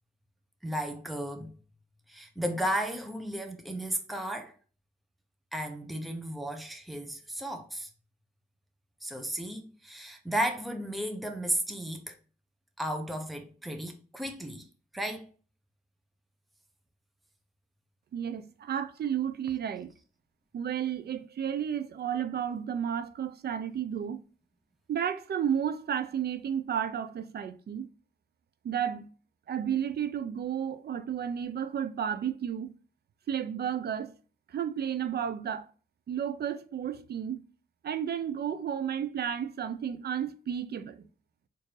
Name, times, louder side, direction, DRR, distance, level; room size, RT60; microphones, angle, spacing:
voice 1, 0.6-1.5 2.1-4.5 5.5-7.9 9.0-12.2 12.8-14.7 14.9-15.3, right 1 dB, ahead, 0.7 m, -34 dB
voice 2, 18.1-19.9 20.5-24.2 24.9-27.9 28.6-29.1 29.5-32.7 33.3-34.1 34.5-35.7 36.1-37.4 37.8-41.0, right 8 dB, 70° right, 0.5 m, -32 dB
4.3 x 2.7 x 3.1 m
cardioid pair, 80°, 17 cm